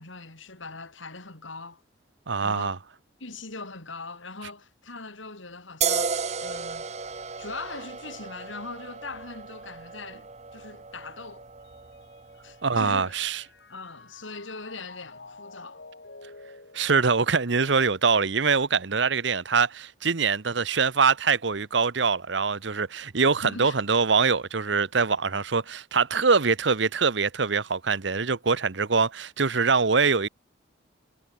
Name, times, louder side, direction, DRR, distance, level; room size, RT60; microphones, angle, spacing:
voice 1, 0.0-1.8 2.4-2.8 3.2-6.9 7.4-11.4 12.4-13.1 13.7-15.8 23.4-23.8, left 3 dB, 80° left, 5.6 m, -41 dB
voice 2, 2.3-2.8 12.6-13.4 16.7-30.3, right 5 dB, 65° right, 1.0 m, -23 dB
sound 1, 5.8-13.1, right 6 dB, 35° right, 1.1 m, -34 dB
Mallet percussion, 11.6-18.1, left 3 dB, 55° left, 2.3 m, -50 dB
head